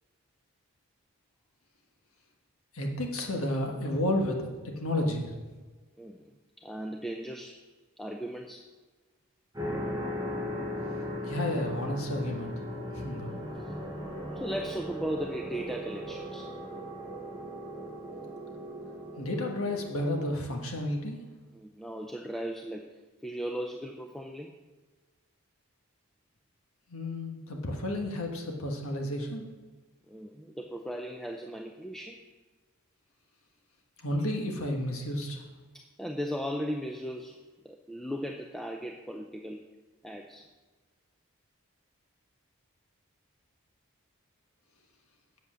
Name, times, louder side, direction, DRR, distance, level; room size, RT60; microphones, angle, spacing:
voice 1, 2.7-5.3 11.2-12.5 12.9-13.3 19.2-21.2 26.9-29.4 34.0-35.4, left 1 dB, 70° left, 2 dB, 1.4 m, -31 dB
voice 2, 6.0-6.3 6.6-7.6 8.0-8.7 13.6-13.7 14.3-16.5 21.5-24.6 30.1-32.3 35.7-39.7 40.0-40.5, equal, ahead, 2 dB, 0.4 m, -37 dB
sound 1, 9.5-20.3, equal, 15° right, 3.9 m, -37 dB
8.1 x 8.0 x 6.3 m, 1.3 s
head